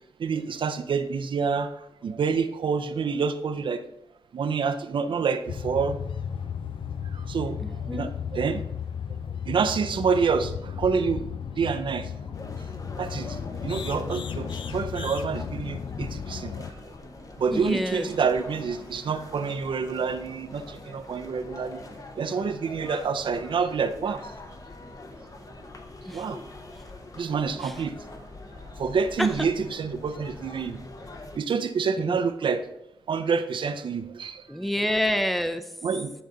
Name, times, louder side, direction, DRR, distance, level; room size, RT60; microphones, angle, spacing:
voice 1, 0.2-1.7 2.0-3.8 4.3-6.0 7.1-7.6 7.9-8.6 9.5-11.2 11.6-12.1 13.0-16.7 17.4-21.8 22.2-24.2 26.1-26.4 27.2-27.9 28.8-30.8 31.3-32.6 33.1-34.4 35.8-36.1, right 5 dB, 60° right, 10 dB, 0.5 m, -27 dB
sound 1, 5.5-16.7, left 7 dB, 60° left, 0.5 m, -34 dB
voice 2, 7.6-8.1 17.5-18.1 26.1-26.3 27.6-27.7 29.2-29.5 32.1-32.2 34.5-35.7, left 1 dB, ahead, 10 dB, 0.5 m, -28 dB
sound 2, 12.3-31.4, left 2 dB, 35° left, 0.9 m, -44 dB
10.5 x 3.9 x 3.8 m, 0.83 s
cardioid pair, 85°, 10 cm